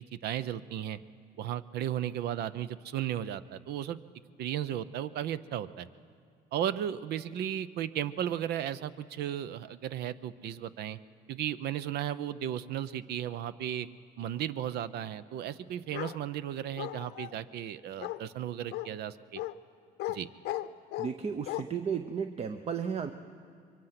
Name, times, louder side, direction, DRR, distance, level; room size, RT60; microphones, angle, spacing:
voice 1, 0.2-1.0 1.4-4.0 4.4-5.9 6.5-11.0 11.3-13.9 14.2-19.4 20.1-20.3, right 10 dB, 75° right, 15 dB, 0.7 m, -35 dB
Bark, 15.9-16.2 16.8-17.3 18.0-18.2 18.7-18.9 19.4-19.5 20.0-20.2 20.4-21.1 21.5-21.6, left 15 dB, 90° left, 0.8 m, -35 dB
voice 2, 21.0-23.1, right 6 dB, 35° right, 8 dB, 0.7 m, -34 dB
24.0 x 23.0 x 5.9 m, 2.3 s
cardioid pair, 110°, 17 cm